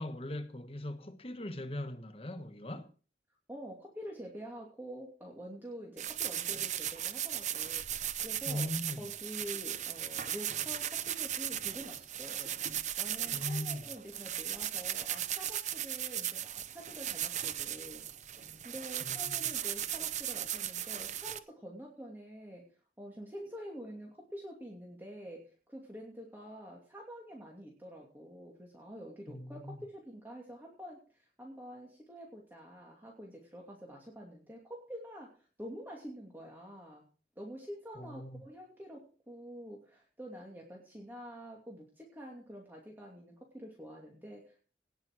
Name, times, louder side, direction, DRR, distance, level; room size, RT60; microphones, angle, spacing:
voice 1, 0.0-2.9 8.5-9.1 13.3-13.8 19.0-19.5 29.3-29.8 37.9-38.4, left 1 dB, 35° left, 1.3 m, -40 dB
voice 2, 3.5-8.7 9.0-12.6 13.0-22.6 23.0-37.0 37.4-44.6, equal, 10° right, 2.7 m, -47 dB
sound 1, 6.0-21.4, right 11 dB, 40° right, 0.7 m, -37 dB
18.5 x 6.4 x 6.1 m
head